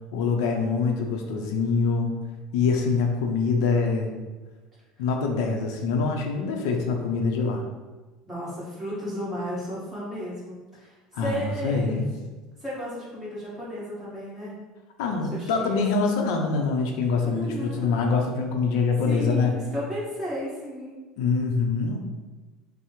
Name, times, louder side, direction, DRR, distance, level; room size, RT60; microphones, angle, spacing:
voice 1, 0.1-2.2 2.5-4.2 5.0-7.6 11.1-12.0 15.0-19.6 21.2-22.0, left 4 dB, 85° left, 2 dB, 0.5 m, -25 dB
voice 2, 8.2-12.1 12.6-14.5 15.3-16.1 17.2-17.9 19.0-21.0, equal, 10° right, -9 dB, 1.4 m, -34 dB
5.6 x 2.0 x 3.0 m, 1.3 s
cardioid pair, 160°, 2 cm